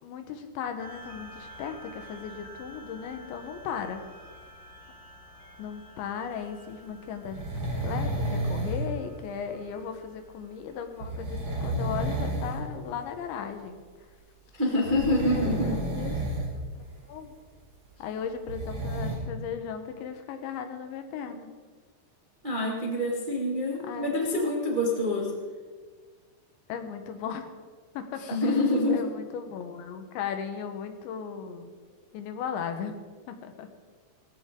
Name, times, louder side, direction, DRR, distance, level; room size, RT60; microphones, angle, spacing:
voice 1, 0.0-4.0 5.6-7.5 7.8-13.8 15.1-15.2 15.5-16.2 16.8-17.3 18.0-21.6 23.9-24.6 26.7-27.5 27.9-28.5 28.9-31.7 32.1-33.0 33.3-33.7, left 7 dB, 75° left, 7 dB, 3.4 m, -37 dB
sound 1, 0.8-11.7, equal, 45° left, 4.9 m, -50 dB
Schnarchen - Mann, 7.2-8.9 11.0-12.6 12.9-13.1 14.8-16.5 16.8-16.9 18.2-19.2, right 1 dB, 30° right, 4.4 m, -31 dB
voice 2, 14.5-15.7 22.4-25.3 28.2-29.1, left 1 dB, 80° right, -3 dB, 0.4 m, -26 dB
18.0 x 15.5 x 3.8 m, 1.5 s
omnidirectional pair, 5.4 m